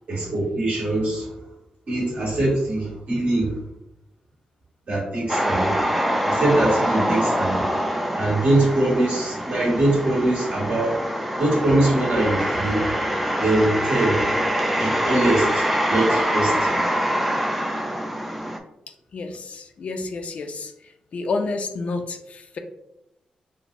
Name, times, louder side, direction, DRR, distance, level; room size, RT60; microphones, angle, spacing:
voice 1, 0.2-1.3 1.9-3.6 4.9-5.8 6.2-7.7 8.2-11.0 11.4-12.9 13.4-14.2 14.8-16.8, right 2 dB, 50° right, -4 dB, 1.5 m, -22 dB
sound 1, 5.3-18.6, equal, 5° right, 0.4 m, -24 dB
voice 2, 18.9-22.6, left 3 dB, 60° left, 6 dB, 0.4 m, -30 dB
5.2 x 2.0 x 2.5 m, 0.84 s
cardioid pair, 95°, 3 cm